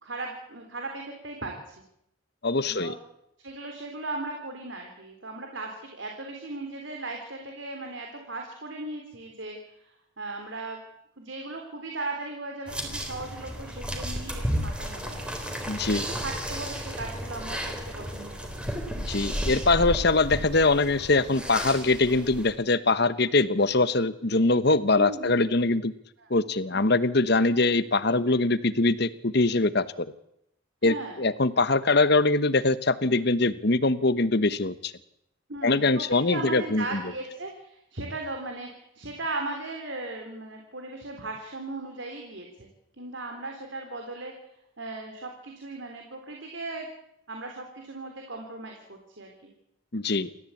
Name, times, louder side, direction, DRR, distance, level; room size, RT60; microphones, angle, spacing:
voice 1, 0.0-1.8 2.6-3.0 3.4-9.6 9.8-10.8 11.2-15.3 15.9-18.7 24.9-25.5 26.2-26.3 26.7-26.9 30.8-31.2 35.5-42.7 43.0-44.3 44.8-46.9 47.3-49.5, right 2 dB, 65° right, 2 dB, 3.6 m, -37 dB
voice 2, 2.4-2.9 15.7-16.1 19.0-25.9 26.3-30.1 30.8-34.9 35.6-37.0 49.9-50.3, left 3 dB, 50° left, 14 dB, 1.1 m, -23 dB
sound 1, 12.7-22.5, equal, 5° right, 3.5 m, -33 dB
28.5 x 14.0 x 8.5 m, 0.78 s
head